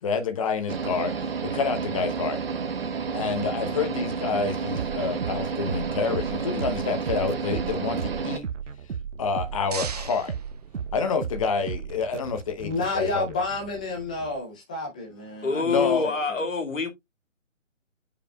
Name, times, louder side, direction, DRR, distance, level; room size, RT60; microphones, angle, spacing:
voice 1, 0.0-2.4 3.1-8.4 9.2-10.3 10.9-13.3 15.5-16.1, left 5 dB, 25° left, 1.0 m, -28 dB
sound 1, 0.7-8.4, right 5 dB, 50° right, 1.1 m, -30 dB
sound 2, 4.7-14.4, right 7 dB, 65° right, 0.8 m, -36 dB
sound 3, 9.1-11.4, right 6 dB, 30° right, 0.7 m, -40 dB
voice 2, 12.6-16.4, left 3 dB, 5° left, 0.6 m, -31 dB
voice 3, 15.4-16.9, left 4 dB, 70° left, 2.2 m, -26 dB
8.1 x 5.1 x 2.3 m
figure-of-eight pair, 145°, 39 cm